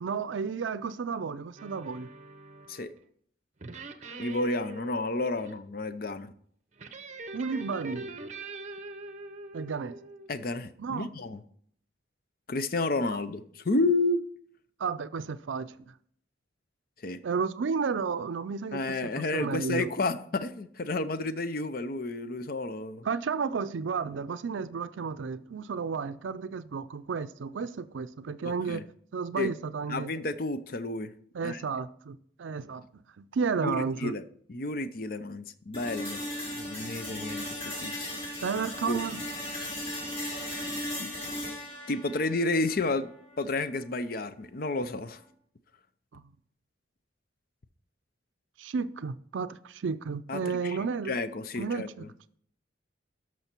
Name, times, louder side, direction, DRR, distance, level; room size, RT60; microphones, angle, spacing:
voice 1, 0.0-2.1 7.3-8.2 9.5-10.0 10.8-11.1 14.8-15.7 17.2-19.9 23.0-28.8 29.1-30.1 31.3-32.8 33.2-34.1 38.4-39.2 46.1-46.2 48.6-51.1 51.6-52.0, right 5 dB, 85° right, 0.4 m, -32 dB
sound 1, 1.6-3.0 3.6-5.6 6.8-10.3, right 2 dB, 40° right, 0.7 m, -43 dB
voice 2, 4.2-6.3 10.3-11.4 12.5-14.2 17.0-17.2 18.7-23.0 28.7-28.8 29.4-29.5 29.9-31.1 31.4-31.6 33.6-36.2 36.5-38.1 38.9-39.0 41.0-41.1 41.9-45.2 50.3-52.1, left 2 dB, 50° left, 0.6 m, -31 dB
sound 2, 35.7-43.7, left 1 dB, 30° left, 4.9 m, -37 dB
12.5 x 6.3 x 4.4 m
head